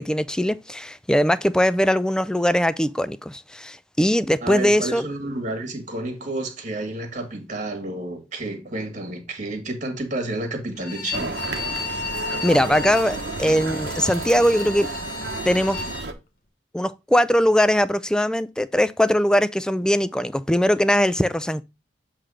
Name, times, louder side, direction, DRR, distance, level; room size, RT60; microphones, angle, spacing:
voice 1, 0.0-5.1 12.4-14.9 15.5-15.8 16.7-21.6, equal, 5° left, 0.3 m, -21 dB
voice 2, 4.4-11.4 13.5-13.6, right 2 dB, 45° right, 1.8 m, -30 dB
Bowed string instrument, 10.8-16.1, left 3 dB, 55° left, 1.1 m, -33 dB
sound 1, 11.1-16.1, right 3 dB, 70° right, 1.0 m, -32 dB
7.9 x 3.2 x 4.8 m
head